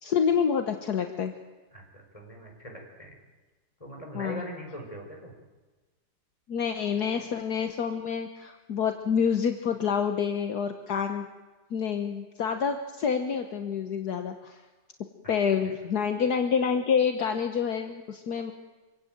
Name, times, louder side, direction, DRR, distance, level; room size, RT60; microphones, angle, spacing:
voice 1, 0.0-1.3 4.1-4.4 6.5-11.3 11.7-14.6 15.3-18.5, left 7 dB, 65° left, 6 dB, 1.6 m, -27 dB
voice 2, 1.7-3.2 3.8-5.3 15.2-15.3 15.6-15.7, right 1 dB, 20° left, 1 dB, 5.1 m, -41 dB
25.5 x 17.0 x 9.1 m, 1.3 s
omnidirectional pair, 1.9 m